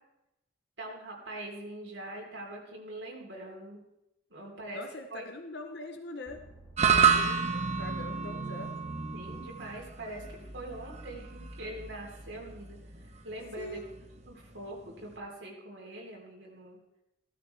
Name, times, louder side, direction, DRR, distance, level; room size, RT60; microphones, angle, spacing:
voice 1, 0.8-3.8 4.3-4.8 5.1-5.3 6.8-7.2 9.1-12.8 13.2-13.8 14.3-16.8, right 1 dB, 70° right, -1 dB, 3.8 m, -43 dB
voice 2, 4.7-6.4 6.9-8.7 13.6-13.9, left 2 dB, 60° left, 5 dB, 0.9 m, -43 dB
sound 1, 6.3-8.9, right 1 dB, 15° right, 2.1 m, -56 dB
sound 2, 6.8-15.2, right 6 dB, 35° right, 0.8 m, -30 dB
16.0 x 12.5 x 3.4 m, 0.89 s
head